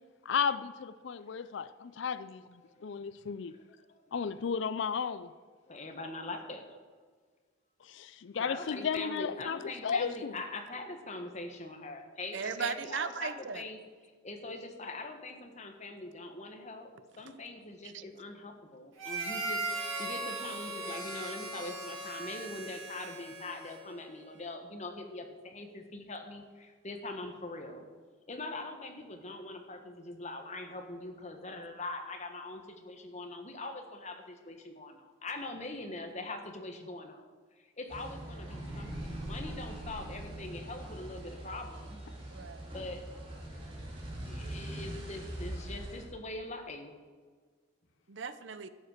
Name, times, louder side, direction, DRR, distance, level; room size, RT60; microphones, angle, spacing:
voice 1, 0.3-3.5 4.1-5.3 7.8-10.3, left 6 dB, 60° left, 14 dB, 0.4 m, -34 dB
voice 2, 3.9-4.2 5.7-6.8 8.4-13.8 14.2-27.9 28.3-37.2 37.6-42.0 42.7-43.0 44.3-47.0, left 2 dB, 35° left, 5 dB, 1.4 m, -42 dB
voice 3, 12.3-13.6 17.9-18.0 42.3-42.7 48.1-48.7, right 5 dB, 60° right, 12 dB, 0.7 m, -37 dB
Harmonica, 19.0-24.0, right 2 dB, 85° right, 3.9 m, -38 dB
sound 1, 37.9-46.0, right 1 dB, 25° right, 2.8 m, -42 dB
12.5 x 7.9 x 6.6 m, 1.5 s
head